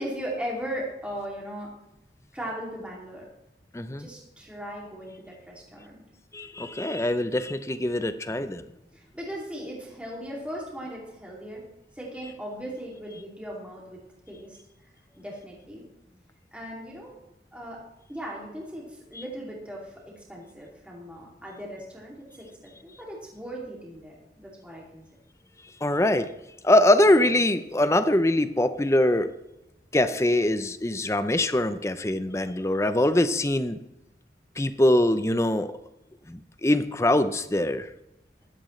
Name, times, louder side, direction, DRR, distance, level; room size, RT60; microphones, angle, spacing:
voice 1, 0.0-1.7 2.3-3.3 4.0-6.0 8.9-11.6 11.9-14.6 15.1-15.9 16.5-17.2 17.5-17.8 18.1-25.0, equal, 5° right, -4 dB, 2.6 m, -38 dB
voice 2, 3.7-4.1 6.3-8.6 25.8-26.3 26.6-29.3 29.9-33.8 34.6-35.7 36.3-37.9, left 1 dB, 15° left, 11 dB, 0.5 m, -23 dB
14.5 x 12.0 x 3.2 m, 0.92 s
head